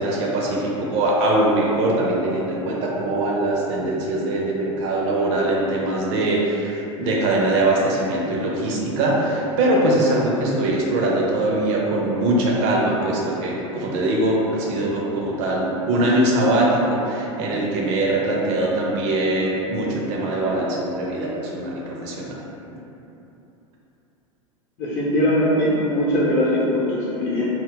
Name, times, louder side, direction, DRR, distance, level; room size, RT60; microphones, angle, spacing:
voice 1, 0.0-22.4, right 1 dB, 55° right, -3 dB, 0.6 m, -22 dB
voice 2, 24.8-27.4, equal, 45° left, -8 dB, 0.7 m, -21 dB
2.3 x 2.0 x 3.7 m, 2.9 s
hypercardioid pair, 85°, 17 cm